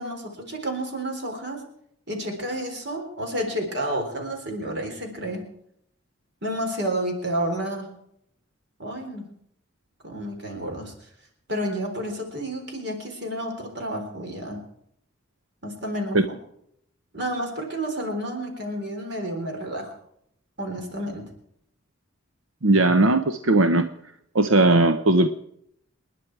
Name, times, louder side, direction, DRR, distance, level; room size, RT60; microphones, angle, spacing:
voice 1, 0.0-1.6 2.1-5.4 6.4-7.9 8.8-9.3 10.0-10.9 11.5-14.6 15.6-16.4 17.1-19.9 20.6-21.2, right 1 dB, 55° right, 3 dB, 3.9 m, -30 dB
voice 2, 22.6-23.9 24.3-25.3, right 2 dB, 80° right, 9 dB, 0.9 m, -18 dB
28.0 x 10.5 x 4.7 m, 0.73 s
head